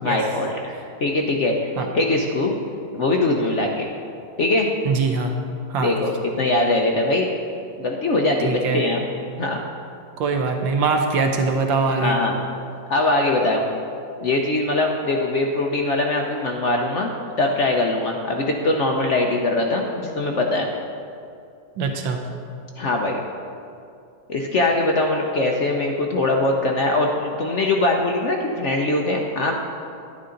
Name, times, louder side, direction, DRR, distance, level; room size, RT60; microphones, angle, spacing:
voice 1, 0.0-2.6 2.9-3.9 4.4-4.7 5.8-6.1 6.4-7.3 7.8-9.1 9.4-9.6 12.0-12.3 12.9-13.6 14.2-17.1 17.4-20.7 22.8-23.2 24.3-29.5, left 2 dB, 60° left, 1 dB, 0.7 m, -22 dB
voice 2, 4.8-5.4 5.7-5.9 8.4-8.8 10.2-12.2 21.8-22.2, right 4 dB, 80° right, 4 dB, 1.5 m, -22 dB
11.0 x 9.4 x 3.8 m, 2.5 s
omnidirectional pair, 2.1 m